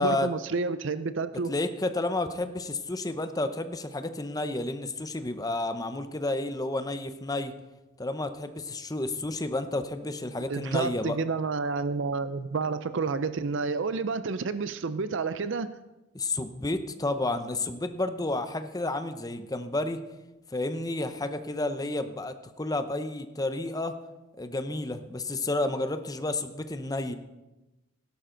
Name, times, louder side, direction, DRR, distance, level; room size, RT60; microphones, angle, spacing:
voice 1, 0.0-1.5 10.5-15.7, right 4 dB, 60° right, 13 dB, 0.5 m, -30 dB
voice 2, 1.5-7.5 8.0-11.2 16.1-20.0 20.5-23.9 24.4-27.1, left 2 dB, 20° left, 9 dB, 0.8 m, -31 dB
17.0 x 11.5 x 3.9 m, 1.0 s
head